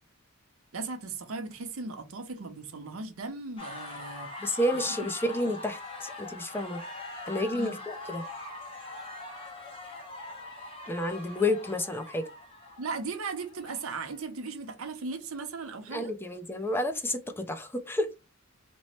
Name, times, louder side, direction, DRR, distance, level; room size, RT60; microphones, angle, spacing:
voice 1, 0.7-4.3 4.9-5.0 7.5-7.8 12.8-16.1, right 4 dB, 80° right, 0.7 m, -37 dB
sound 1, 3.6-14.3, left 2 dB, 25° left, 0.9 m, -42 dB
voice 2, 4.4-6.8 7.3-8.2 10.9-12.3 15.9-18.1, left 1 dB, 10° left, 0.4 m, -30 dB
3.0 x 2.1 x 4.1 m
head